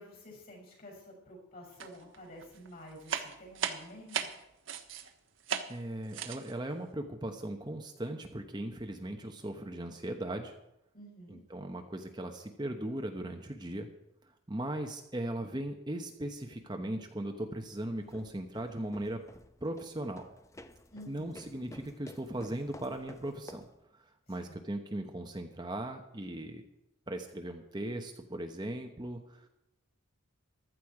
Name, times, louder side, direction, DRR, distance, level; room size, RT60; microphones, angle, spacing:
voice 1, 0.0-4.3 10.9-11.4 20.9-21.5 24.3-24.5, equal, 45° left, 0 dB, 6.7 m, -50 dB
sound 1, 1.8-2.2 2.4-5.1 5.4-5.8 6.1-6.5, right 7 dB, 60° right, 1.3 m, -36 dB
voice 2, 5.7-10.5 11.3-13.9 14.5-19.2 19.6-20.2 21.1-23.7 24.3-26.6 27.1-29.5, right 1 dB, 20° right, 4 dB, 0.9 m, -38 dB
sound 2, 17.9-23.8, left 1 dB, 15° left, 0.6 m, -52 dB
15.0 x 12.5 x 4.8 m, 0.85 s
head